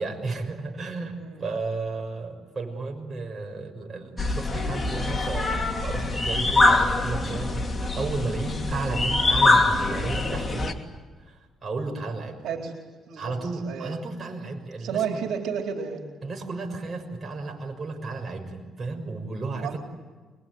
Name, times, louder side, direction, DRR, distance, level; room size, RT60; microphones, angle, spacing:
voice 1, 0.0-10.8 11.3-12.4 13.2-15.3 16.2-19.8, right 3 dB, 40° right, 2 dB, 6.4 m, -33 dB
voice 2, 1.1-1.4 12.4-12.7 13.1-13.3 13.6-14.0 14.8-16.0 19.6-19.8, right 7 dB, 80° right, 3 dB, 4.0 m, -31 dB
sound 1, 4.2-10.7, left 2 dB, 20° left, 3.0 m, -24 dB
25.5 x 22.5 x 9.5 m, 1.4 s
cardioid pair, 90°, 0 cm